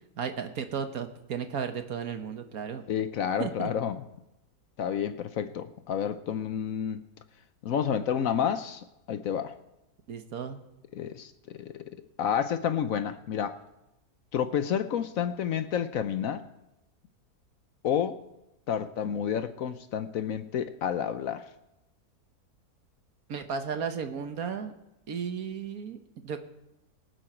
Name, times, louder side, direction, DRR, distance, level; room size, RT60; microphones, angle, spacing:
voice 1, 0.2-2.8 3.4-3.7 10.1-10.6 23.3-24.7 25.1-26.4, right 7 dB, 65° right, 7 dB, 1.5 m, -34 dB
voice 2, 2.9-4.0 4.8-7.0 7.6-9.5 10.9-11.7 12.2-13.6 14.3-16.4 17.8-18.2 18.7-21.4, left 8 dB, 65° left, 11 dB, 1.0 m, -30 dB
23.5 x 7.8 x 4.4 m, 0.92 s
omnidirectional pair, 1.7 m